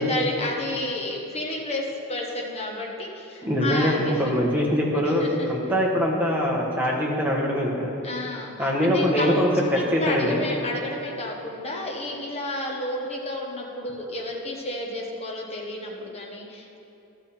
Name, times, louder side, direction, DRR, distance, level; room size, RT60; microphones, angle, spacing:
voice 1, 0.0-4.3 5.2-5.5 8.0-16.8, left 1 dB, 30° left, -1 dB, 1.1 m, -31 dB
voice 2, 3.4-7.9 8.6-10.4, equal, 10° right, -3 dB, 1.3 m, -23 dB
12.5 x 6.9 x 4.3 m, 2.8 s
head